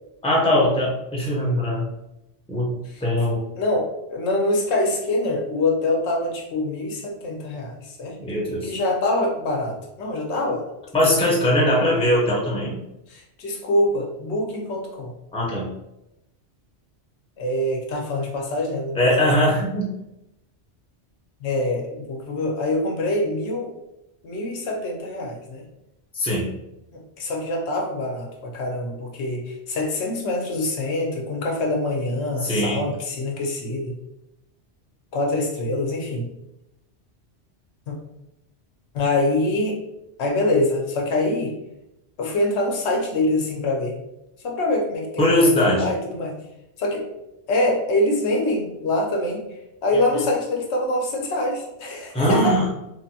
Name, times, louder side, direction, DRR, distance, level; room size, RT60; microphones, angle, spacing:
voice 1, 0.2-1.8 2.5-3.4 8.2-8.7 10.9-12.8 15.3-15.7 18.9-19.9 26.1-26.5 32.4-32.8 45.2-46.0 52.1-52.7, left 1 dB, 5° left, -4 dB, 0.6 m, -21 dB
voice 2, 3.6-8.2 8.6-10.7 13.1-15.1 17.4-19.0 21.4-23.7 24.2-25.6 26.9-33.9 35.1-36.3 37.9-38.0 38.9-39.8 40.2-41.5 42.2-44.0 44.4-46.3 46.8-47.0 47.5-49.4 49.8-52.6, left 2 dB, 75° left, 1 dB, 0.9 m, -24 dB
3.2 x 2.2 x 2.7 m, 0.89 s
omnidirectional pair, 1.1 m